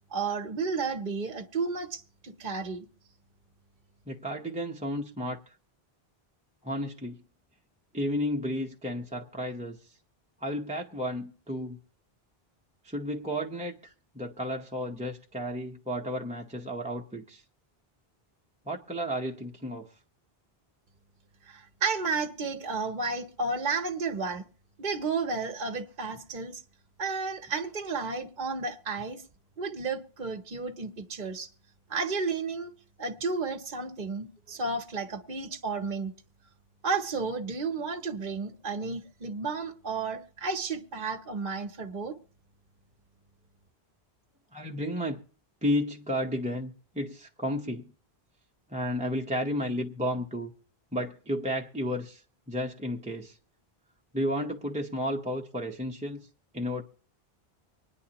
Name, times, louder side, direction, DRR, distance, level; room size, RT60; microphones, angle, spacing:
voice 1, 0.1-2.9 21.5-24.4 24.8-26.6 27.0-29.2 29.6-31.5 31.9-32.7 33.0-36.1 36.8-42.1, right 4 dB, 50° right, 0.9 m, -32 dB
voice 2, 4.1-5.5 6.6-7.2 7.9-9.8 10.4-11.8 12.8-17.4 18.7-19.9 44.5-45.2 45.6-47.9 48.7-50.5 50.9-53.4 54.1-56.3 56.5-56.8, equal, 10° right, 0.7 m, -32 dB
25.0 x 9.9 x 2.9 m
omnidirectional pair, 1.0 m